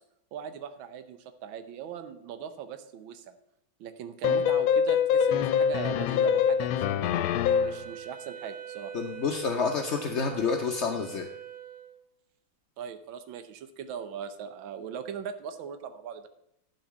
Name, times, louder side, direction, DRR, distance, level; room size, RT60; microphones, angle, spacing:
voice 1, 0.3-3.4 3.8-7.1 7.6-8.9 12.8-16.3, right 8 dB, 80° right, 9 dB, 1.6 m, -40 dB
sound 1, 4.2-7.9, left 7 dB, 85° left, 1.4 m, -24 dB
Wind instrument woodwind instrument, 7.6-12.2, right 11 dB, 55° right, 1.3 m, -43 dB
voice 2, 8.9-11.3, left 5 dB, 65° left, 3 dB, 0.6 m, -29 dB
11.5 x 3.9 x 7.1 m, 0.81 s
omnidirectional pair, 2.1 m